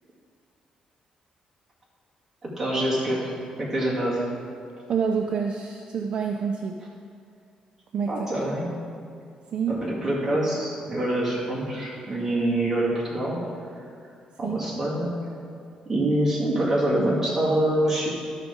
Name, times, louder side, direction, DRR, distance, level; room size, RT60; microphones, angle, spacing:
voice 1, 2.4-3.3 3.6-4.3 8.1-8.7 9.7-13.4 13.8-13.9 14.4-15.1 15.9-18.1, right 1 dB, 20° right, -6 dB, 2.2 m, -25 dB
voice 2, 4.9-6.8 7.9-8.3 9.5-9.8 10.9-11.0 11.6-11.7 14.4-14.6, right 6 dB, 50° right, 3 dB, 0.5 m, -27 dB
12.0 x 6.1 x 3.8 m, 2.4 s
cardioid pair, 140°, 2 cm